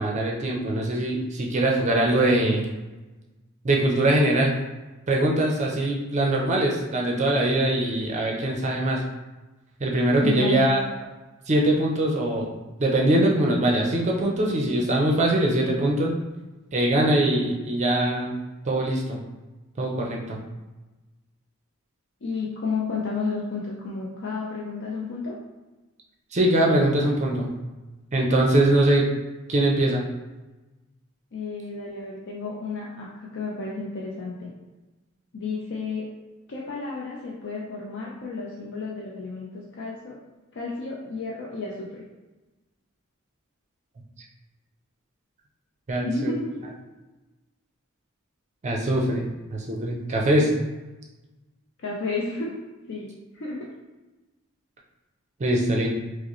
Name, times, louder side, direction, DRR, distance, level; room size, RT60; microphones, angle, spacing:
voice 1, 0.0-2.6 3.6-4.6 5.1-9.0 9.8-10.8 11.5-12.5 12.8-16.1 16.7-18.3 18.7-19.2 19.8-20.4 26.3-27.5 28.1-29.1 29.5-30.0 45.9-46.3 48.6-50.5 55.4-55.9, right 1 dB, 35° right, -1 dB, 0.5 m, -22 dB
voice 2, 10.2-10.7 22.2-25.3 31.3-34.5 35.3-36.0 36.5-40.1 40.5-42.1 46.0-46.7 51.8-52.5 52.9-53.7, left 4 dB, 60° left, -4 dB, 0.5 m, -32 dB
4.9 x 2.0 x 3.0 m, 1.1 s
head